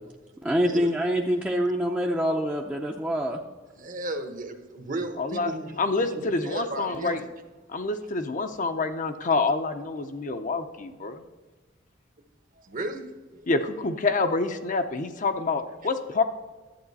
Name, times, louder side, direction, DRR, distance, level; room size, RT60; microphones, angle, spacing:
voice 1, 0.4-3.4, equal, 10° right, -1 dB, 0.6 m, -25 dB
voice 2, 3.8-7.3 12.5-13.1 13.3-13.5, right 2 dB, 45° right, 7 dB, 1.0 m, -35 dB
voice 3, 5.2-5.5 5.8-7.2 7.7-11.2 13.5-16.2, left 3 dB, 40° left, 7 dB, 0.6 m, -27 dB
11.5 x 8.7 x 4.1 m, 1.3 s
head